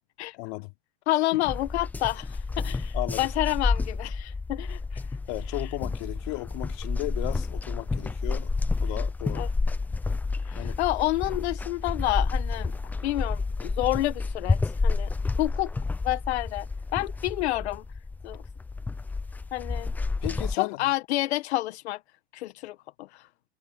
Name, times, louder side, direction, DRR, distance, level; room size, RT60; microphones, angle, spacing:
voice 1, 0.3-0.7 1.3-1.5 2.9-3.3 5.3-8.5 8.8-9.4 10.6-10.8 20.2-20.9, left 24 dB, 50° left, 3.5 m, -35 dB
voice 2, 1.1-5.0 5.6-5.7 9.3-9.5 10.4-12.7 13.0-15.1 15.4-15.7 16.0-16.7 16.9-17.8 18.2-18.4 19.5-19.9 20.5-22.0 22.3-22.8 23.1-23.3, left 17 dB, 70° left, 1.3 m, -29 dB
sound 1, 1.5-20.6, left 3 dB, 5° left, 0.6 m, -30 dB
supercardioid pair, 165°, 34 cm